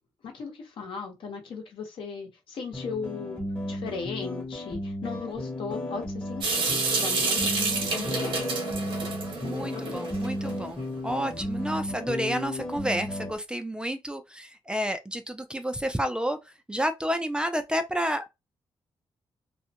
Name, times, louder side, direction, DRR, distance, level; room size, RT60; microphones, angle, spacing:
voice 1, 0.2-8.6 9.4-9.9, left 5 dB, 70° left, 0.9 m, -37 dB
sound 1, 2.7-13.3, left 1 dB, 15° left, 0.8 m, -34 dB
Water tap faucet / Sink (filling or washing) / Drip, 6.4-10.5, right 4 dB, 70° right, 1.0 m, -29 dB
voice 2, 9.4-16.4 16.7-18.3, equal, 10° right, 0.3 m, -30 dB
2.4 x 2.1 x 2.8 m
cardioid pair, 110°, 9 cm